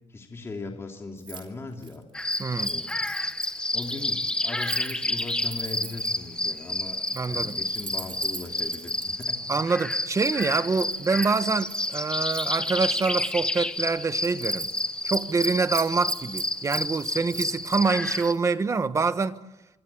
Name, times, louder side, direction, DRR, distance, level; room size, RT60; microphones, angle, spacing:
voice 1, 0.1-2.0 2.6-2.9 3.7-9.4, left 3 dB, 25° left, 3.0 m, -39 dB
Keys jangling, 1.2-1.5 1.7-6.3 6.9-9.3 9.9-11.9 12.3-13.4 13.7-13.9 14.2-14.8 15.1-17.8 18.2-18.4, right 6 dB, 45° right, 4.1 m, -42 dB
sound 1, 2.1-18.3, left 1 dB, 10° left, 1.2 m, -30 dB
voice 2, 2.4-2.7 7.1-7.6 9.5-14.7 15.0-19.4, right 4 dB, 25° right, 1.2 m, -26 dB
26.5 x 25.5 x 8.4 m
wide cardioid pair, 175°, 11 cm